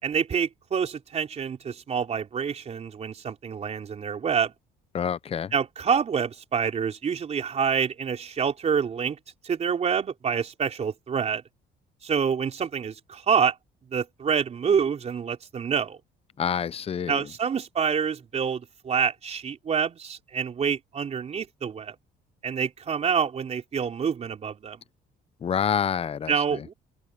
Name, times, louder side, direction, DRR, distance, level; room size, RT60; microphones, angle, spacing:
voice 1, 0.0-4.5 5.5-9.2 9.4-11.4 12.0-13.6 13.9-16.0 17.1-22.0 22.4-24.8 26.3-26.7, right 7 dB, 40° right, 3.9 m, -27 dB
voice 2, 4.9-5.5 16.4-17.2 25.4-26.3, left 8 dB, 35° left, 0.8 m, -27 dB
open air
cardioid pair, 110°, 17 cm